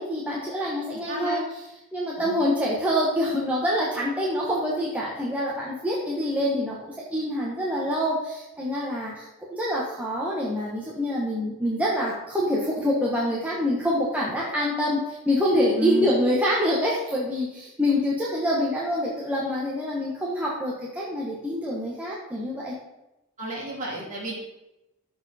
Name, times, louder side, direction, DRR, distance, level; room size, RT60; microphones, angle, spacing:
voice 1, 0.0-1.4 1.9-22.7, equal, 5° right, -6 dB, 1.2 m, -26 dB
voice 2, 1.1-1.4 2.2-2.4 15.8-16.1 17.9-18.0 23.4-24.3, right 1 dB, 35° right, -5 dB, 3.3 m, -31 dB
13.0 x 4.5 x 4.2 m, 0.94 s
head